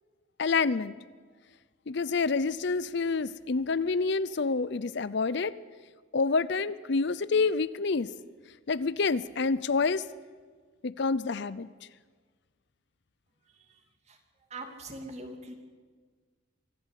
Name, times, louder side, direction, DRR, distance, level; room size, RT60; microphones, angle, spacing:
voice 1, 0.4-1.0 1.9-5.5 6.1-8.1 8.7-10.0 10.8-11.7, left 4 dB, 60° left, 17 dB, 0.6 m, -28 dB
voice 2, 14.5-15.5, right 2 dB, 35° right, 4 dB, 2.7 m, -41 dB
24.0 x 15.0 x 8.2 m, 1.5 s
head